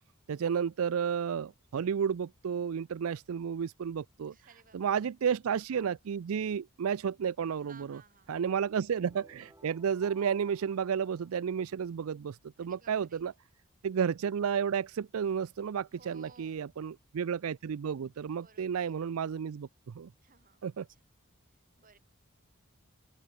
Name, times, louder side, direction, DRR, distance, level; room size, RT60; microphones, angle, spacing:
voice 1, 0.3-4.3 4.7-8.0 8.3-13.3 13.8-20.1 20.6-20.9, right 7 dB, 80° right, 0.4 m, -32 dB
voice 2, 4.3-5.1 7.6-8.4 12.6-13.3 15.9-16.8 18.3-19.0 20.2-21.0 21.8-22.0, right 5 dB, 40° right, 2.5 m, -60 dB
sound 1, 8.9-12.0, right 2 dB, 15° right, 6.1 m, -60 dB
head